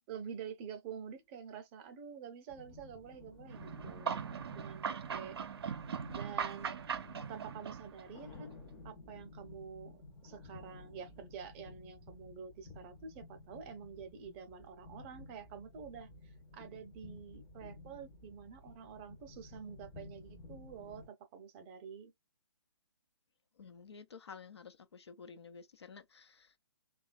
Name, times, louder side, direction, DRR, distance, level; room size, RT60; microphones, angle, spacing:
voice 1, 0.0-5.5 6.1-6.7 7.3-8.5 8.8-16.1 16.5-22.1, right 7 dB, 25° right, 0.6 m, -48 dB
sound 1, 2.5-21.1, left 2 dB, 20° left, 0.7 m, -54 dB
sound 2, 3.5-8.2, right 7 dB, 65° right, 0.5 m, -40 dB
voice 2, 23.6-26.6, left 5 dB, 75° left, 0.8 m, -52 dB
3.0 x 2.3 x 2.4 m
hypercardioid pair, 140°, 14 cm